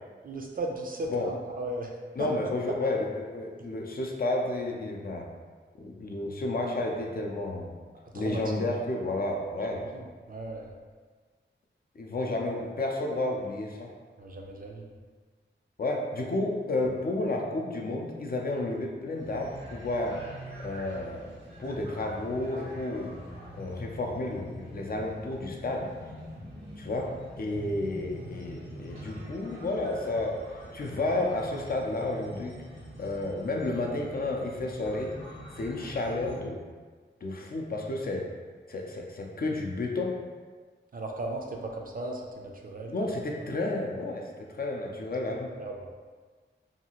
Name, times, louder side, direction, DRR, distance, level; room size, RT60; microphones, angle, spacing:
voice 1, 0.2-1.9 2.2-2.3 8.1-8.7 9.7-10.7 14.2-14.9 40.9-42.9 43.4-43.5 45.6-45.9, right 2 dB, 45° right, 1 dB, 0.4 m, -37 dB
voice 2, 2.2-5.3 5.8-7.7 8.1-9.8 12.0-13.9 15.8-20.2 20.6-21.3 21.6-23.2 23.6-25.9 26.8-30.4 30.7-32.6 33.0-35.2 35.6-36.6 37.2-38.3 38.7-40.2 42.9-45.5, left 2 dB, 50° left, 0 dB, 0.4 m, -31 dB
sound 1, 19.2-36.4, equal, 90° right, 0.9 m, -45 dB
2.7 x 2.4 x 2.8 m, 1.5 s
wide cardioid pair, 85°, 20 cm